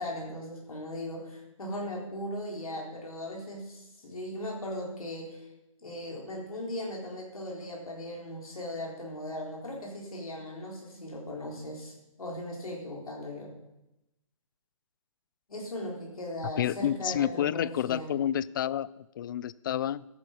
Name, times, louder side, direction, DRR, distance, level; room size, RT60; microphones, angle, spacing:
voice 1, 0.0-5.5 5.8-11.9 12.2-13.5 15.5-18.1, left 1 dB, 85° left, -1 dB, 4.0 m, -38 dB
voice 2, 16.6-20.0, left 10 dB, 40° left, 20 dB, 0.4 m, -29 dB
14.5 x 11.0 x 5.2 m, 0.93 s
hypercardioid pair, 150°, 18 cm